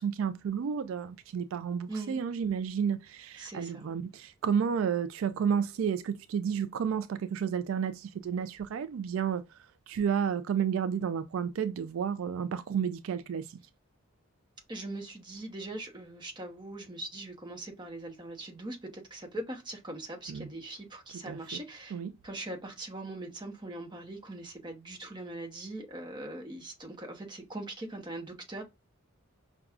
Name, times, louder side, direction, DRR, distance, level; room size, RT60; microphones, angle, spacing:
voice 1, 0.0-13.6 20.3-20.5 21.3-21.4 21.9-22.1, right 7 dB, 75° right, 0.3 m, -31 dB
voice 2, 1.9-2.2 3.4-3.8 14.7-22.0 22.2-28.6, right 2 dB, 25° right, 0.9 m, -41 dB
5.9 x 2.3 x 2.4 m
head